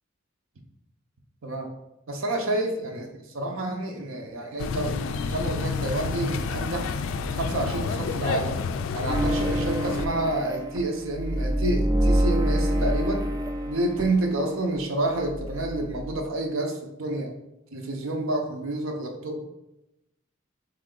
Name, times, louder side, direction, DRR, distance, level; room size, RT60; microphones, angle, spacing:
voice 1, 2.1-6.9 7.3-8.6 8.9-13.2 13.7-17.3 17.7-19.4, right 2 dB, 85° right, 3 dB, 0.7 m, -29 dB
sound 1, 4.6-10.1, left 5 dB, 75° left, 0.3 m, -29 dB
sound 2, 9.1-14.8 15.1-16.2, equal, 15° right, 0.3 m, -27 dB
3.7 x 3.3 x 3.8 m, 0.90 s
head